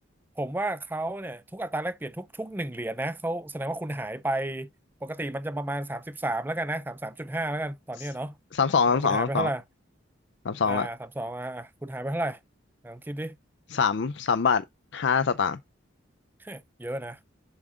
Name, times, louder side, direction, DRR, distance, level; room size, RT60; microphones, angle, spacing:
voice 1, 0.4-4.7 5.0-8.4 8.9-9.6 10.6-12.4 12.8-13.4 16.4-17.2, right 1 dB, 10° right, 0.4 m, -32 dB
voice 2, 8.5-9.5 10.5-10.9 13.7-14.6 14.9-15.6, left 5 dB, 60° left, 0.5 m, -24 dB
7.2 x 3.7 x 4.9 m
head